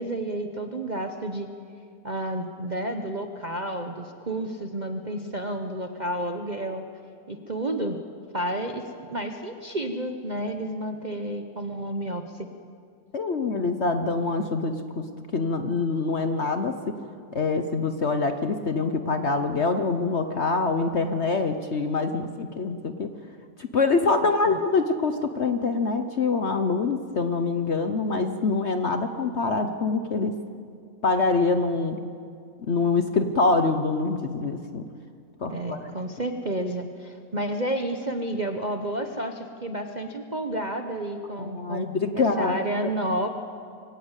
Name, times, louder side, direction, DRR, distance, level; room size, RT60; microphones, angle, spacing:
voice 1, 0.0-1.5 2.0-6.8 7.3-8.0 8.3-12.5 24.2-24.6 35.5-41.8 42.1-43.3, right 1 dB, 35° right, 5 dB, 0.8 m, -31 dB
voice 2, 13.1-15.0 15.3-16.7 17.3-23.1 23.7-30.3 31.0-32.0 32.7-34.8 35.4-35.9 41.4-42.6, left 3 dB, 50° left, 8 dB, 0.9 m, -25 dB
22.5 x 18.0 x 8.2 m, 2.3 s
omnidirectional pair, 1.9 m